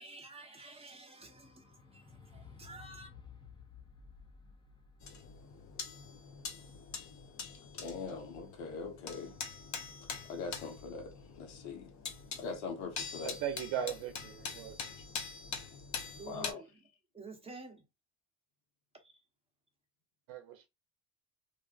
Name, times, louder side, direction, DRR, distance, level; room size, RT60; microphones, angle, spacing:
voice 1, 0.0-3.1 16.1-16.9 17.1-17.9 18.9-19.2, right 3 dB, 10° right, 0.9 m, -51 dB
sound 1, 1.2-7.7 8.5-8.6, left 6 dB, 10° left, 0.3 m, -56 dB
sound 2, 5.0-16.5, left 5 dB, 35° left, 0.7 m, -44 dB
voice 2, 7.7-9.4 10.3-11.9 12.4-13.4 16.3-16.6, left 4 dB, 70° left, 1.1 m, -42 dB
voice 3, 13.2-14.9 20.3-20.7, right 9 dB, 65° right, 0.7 m, -38 dB
2.6 x 2.3 x 2.3 m
supercardioid pair, 90°, 49 cm